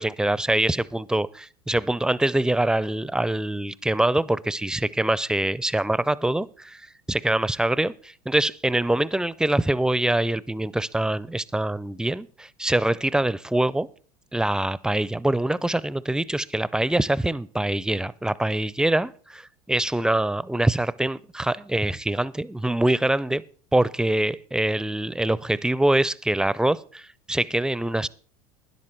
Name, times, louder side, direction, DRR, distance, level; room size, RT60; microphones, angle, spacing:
voice 1, 0.0-6.8 7.1-13.9 14.3-23.4 23.7-28.1, right 1 dB, 5° right, 0.4 m, -24 dB
12.0 x 11.0 x 4.6 m
hypercardioid pair, 80°, 19 cm